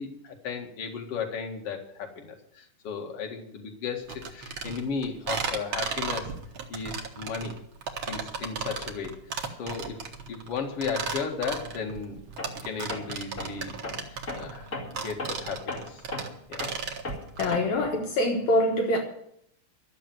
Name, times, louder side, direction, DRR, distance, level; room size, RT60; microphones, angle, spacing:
voice 1, 0.0-6.3 6.7-7.6 8.1-10.0 10.3-12.2 12.6-13.8 14.1-16.0 16.5-16.6, left 5 dB, 50° left, 2.7 m, -35 dB
sound 1, 4.1-17.6, right 5 dB, 50° right, 1.9 m, -35 dB
Tools, 12.4-12.6 12.9-17.9, left 2 dB, 30° left, 2.8 m, -37 dB
voice 2, 17.4-19.0, left 1 dB, 70° left, 2.7 m, -24 dB
12.5 x 7.1 x 9.2 m
omnidirectional pair, 3.5 m